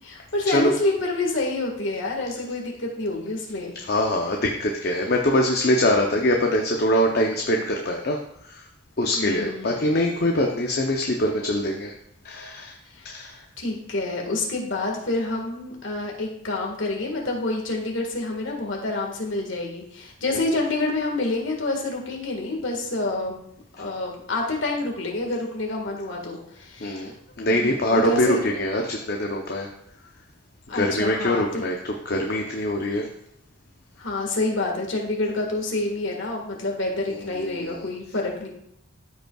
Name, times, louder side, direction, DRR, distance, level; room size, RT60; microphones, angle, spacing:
voice 1, 0.0-3.8 9.1-9.8 12.9-13.1 13.6-23.4 23.8-27.1 27.4-28.4 30.7-31.6 34.0-38.5, left 2 dB, 65° left, 0 dB, 1.7 m, -28 dB
voice 2, 3.9-8.2 8.4-8.6 9.0-11.9 12.2-12.7 13.0-13.4 26.8-27.1 27.4-29.7 30.7-33.1 37.2-37.8, left 1 dB, 50° left, 1 dB, 0.7 m, -23 dB
13.5 x 5.3 x 2.4 m, 0.73 s
head